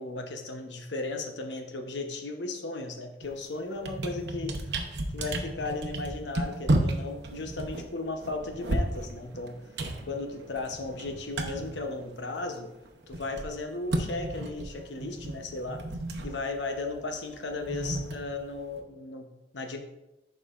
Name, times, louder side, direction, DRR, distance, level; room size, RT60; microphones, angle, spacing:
voice 1, 0.0-4.5 5.1-9.5 10.1-12.7 13.1-15.8 16.2-19.8, left 3 dB, 85° left, 5 dB, 0.9 m, -35 dB
sound 1, 3.2-3.4 3.7-12.6 12.9-18.8, right 1 dB, 75° right, 0.8 m, -33 dB
11.0 x 4.8 x 2.5 m, 0.97 s
head